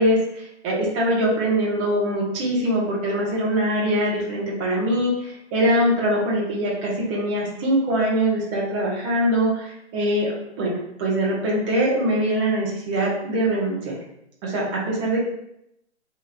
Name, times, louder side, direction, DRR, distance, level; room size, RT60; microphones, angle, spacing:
voice 1, 0.0-10.7 11.0-14.0 14.4-15.2, right 1 dB, 25° right, -3 dB, 1.2 m, -23 dB
4.5 x 3.2 x 2.5 m, 0.79 s
figure-of-eight pair, 130°, 35 cm